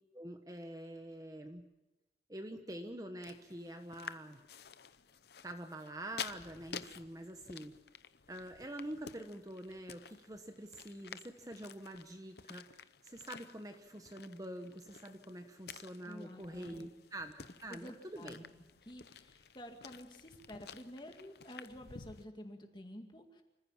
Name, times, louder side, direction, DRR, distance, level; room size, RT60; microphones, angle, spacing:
voice 1, 0.1-1.6 2.3-4.4 5.4-7.8 8.3-18.4, right 1 dB, 20° right, 6 dB, 1.1 m, -46 dB
sound 1, 3.2-22.2, left 7 dB, 65° left, 0.7 m, -52 dB
voice 2, 16.0-16.9 17.7-18.4 18.8-23.4, equal, 25° left, 4 dB, 2.2 m, -50 dB
26.0 x 15.0 x 7.3 m, 1.0 s
head